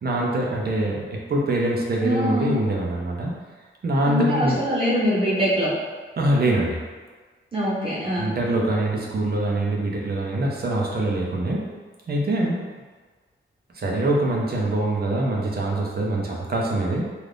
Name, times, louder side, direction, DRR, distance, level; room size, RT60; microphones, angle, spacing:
voice 1, 0.0-3.3 3.8-4.6 6.2-6.8 8.2-11.7 12.1-12.7 13.7-17.1, right 1 dB, 50° right, -2 dB, 0.5 m, -24 dB
voice 2, 2.0-2.5 4.0-5.7 7.5-8.3, equal, 25° right, -9 dB, 1.0 m, -23 dB
2.5 x 2.4 x 3.4 m, 1.4 s
wide cardioid pair, 150°, 21 cm